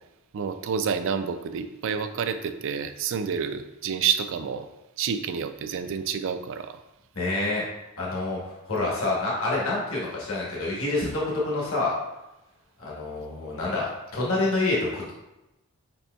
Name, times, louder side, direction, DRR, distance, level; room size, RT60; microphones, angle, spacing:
voice 1, 0.3-4.7 5.0-6.8, right 7 dB, 60° right, 10 dB, 0.3 m, -29 dB
voice 2, 7.1-7.6 8.0-12.0 12.8-15.1, left 2 dB, 65° left, -4 dB, 1.0 m, -27 dB
5.1 x 4.1 x 2.3 m, 0.97 s
head